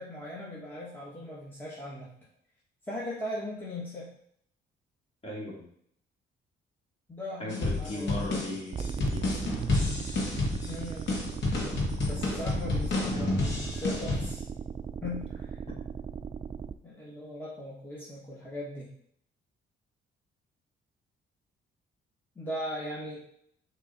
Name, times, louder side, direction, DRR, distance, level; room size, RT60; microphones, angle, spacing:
voice 1, 0.0-2.1 2.9-4.1 7.1-8.2 10.6-11.1 12.0-14.4 15.0-15.6 16.8-18.9 22.3-23.2, left 1 dB, 10° left, -6 dB, 1.5 m, -38 dB
voice 2, 5.2-5.7 7.4-9.6 15.7-15.8, left 1 dB, 30° left, -3 dB, 2.4 m, -37 dB
sound 1, 7.5-14.3, left 2 dB, 65° left, 1.9 m, -30 dB
sound 2, 8.7-16.7, right 6 dB, 30° right, 0.3 m, -38 dB
6.6 x 3.5 x 4.1 m, 0.67 s
cardioid pair, 90°, 20 cm